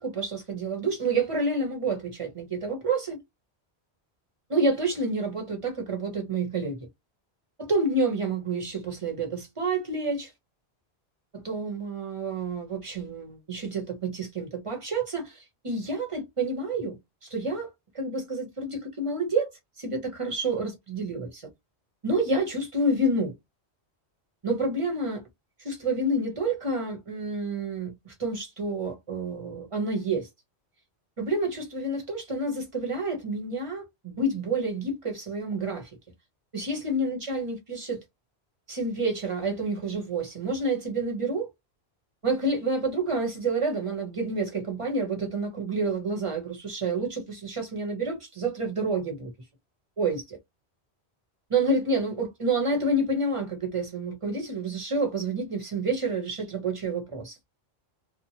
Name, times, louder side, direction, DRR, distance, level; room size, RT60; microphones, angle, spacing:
voice 1, 0.0-3.2 4.5-6.8 7.6-10.3 11.3-17.0 17.2-17.7 17.9-19.5 19.8-21.5 22.0-23.3 24.4-25.2 25.6-30.3 31.2-35.9 36.5-38.0 38.7-41.5 42.2-49.3 50.0-50.4 51.5-57.4, right 2 dB, 30° right, 1.0 m, -29 dB
2.9 x 2.1 x 2.8 m
omnidirectional pair, 1.1 m